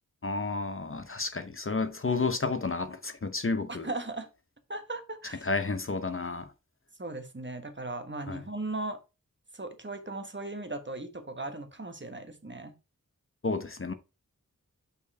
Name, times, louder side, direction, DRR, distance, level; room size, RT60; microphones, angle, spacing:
voice 1, 0.2-3.9 5.4-6.5 8.3-8.4 13.4-13.9, left 3 dB, 40° left, 0.8 m, -31 dB
voice 2, 3.7-4.3 4.7-5.4 7.0-9.0 9.5-12.7, right 2 dB, 35° right, 1.3 m, -37 dB
5.6 x 4.5 x 5.4 m
wide cardioid pair, 50°, 32 cm